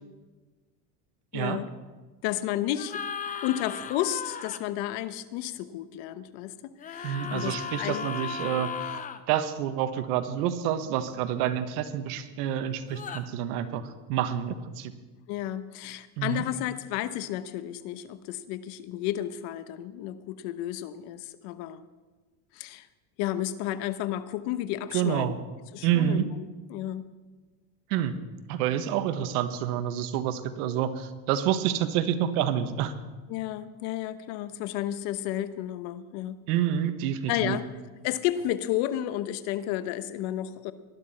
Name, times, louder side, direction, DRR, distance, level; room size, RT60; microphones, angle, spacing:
voice 1, 1.3-1.7 2.2-3.0 3.4-8.1 15.3-21.8 22.5-22.9 23.2-25.3 25.7-26.4 26.7-27.1 33.3-36.4 37.3-37.7 38.0-40.7, left 12 dB, 60° left, 13 dB, 1.0 m, -32 dB
sound 1, 2.7-4.6 6.8-9.2 12.9-13.2, left 7 dB, 15° left, 0.6 m, -36 dB
voice 2, 7.0-8.7 9.3-13.8 14.1-14.9 16.2-16.4 24.9-25.4 25.8-26.3 27.9-28.1 28.5-32.9 36.5-37.6, right 10 dB, 70° right, 9 dB, 1.5 m, -28 dB
19.5 x 12.0 x 4.3 m, 1.3 s
supercardioid pair, 125°, 47 cm